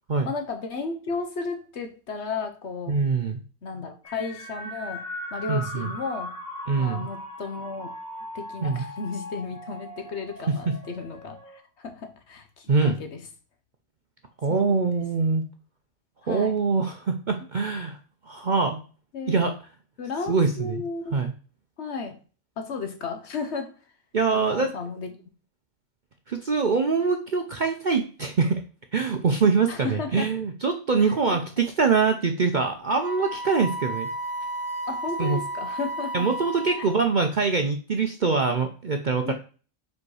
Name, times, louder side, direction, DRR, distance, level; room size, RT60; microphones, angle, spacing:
voice 1, 0.2-3.0 3.6-5.1 5.3-6.4 6.8-7.9 8.3-13.2 14.5-14.9 16.2-16.6 19.1-19.4 20.0-21.2 21.8-22.2 22.6-23.7 24.3-25.1 29.7-30.3 31.0-31.4 34.9-36.3 36.8-36.9 39.2-39.3, left 4 dB, 55° left, 1.1 m, -34 dB
voice 2, 2.9-3.4 5.5-5.9 6.7-7.1 8.6-8.9 10.7-10.8 12.7-13.0 14.4-15.4 16.3-18.0 18.3-18.8 19.3-19.5 20.3-20.8 21.1-21.3 24.1-24.7 26.3-28.6 28.9-34.1 35.2-35.4 36.1-39.3, right 4 dB, 50° right, 0.6 m, -24 dB
sound 1, 4.0-11.6, left 1 dB, 30° left, 1.7 m, -39 dB
Wind instrument woodwind instrument, 33.0-37.2, right 1 dB, 80° left, 2.8 m, -33 dB
5.0 x 4.7 x 4.8 m
omnidirectional pair, 1.4 m